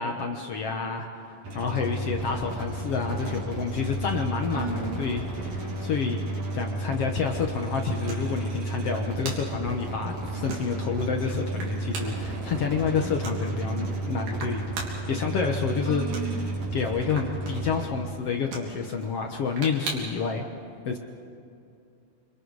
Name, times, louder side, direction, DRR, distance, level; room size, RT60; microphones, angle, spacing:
voice 1, 0.0-6.2 6.5-14.6 15.1-16.0 16.7-20.4 20.8-21.0, left 5 dB, 65° left, 3 dB, 1.5 m, -29 dB
sound 1, 1.4-17.9, right 2 dB, 50° right, 4.3 m, -32 dB
sound 2, 3.6-20.3, right 3 dB, 85° right, 5.2 m, -43 dB
voice 2, 4.5-5.0 15.8-16.7, right 4 dB, 10° right, -3 dB, 2.7 m, -34 dB
28.5 x 25.5 x 4.8 m, 2.5 s
omnidirectional pair, 4.3 m